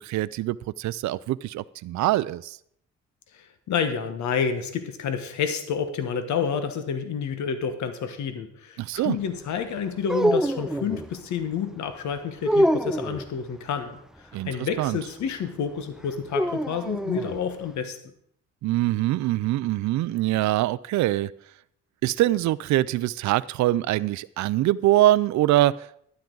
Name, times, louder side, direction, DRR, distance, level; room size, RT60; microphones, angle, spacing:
voice 1, 0.0-2.6 8.8-9.2 14.3-14.5 14.8-15.0 18.6-21.3 22.0-25.9, right 15 dB, 70° right, 17 dB, 0.4 m, -23 dB
voice 2, 3.3-18.0, left 6 dB, 70° left, 8 dB, 1.2 m, -29 dB
sound 1, 10.0-11.1 12.4-13.3 16.3-17.4, equal, ahead, 0.4 m, -24 dB
12.0 x 10.5 x 3.9 m, 0.69 s
cardioid pair, 90°, 30 cm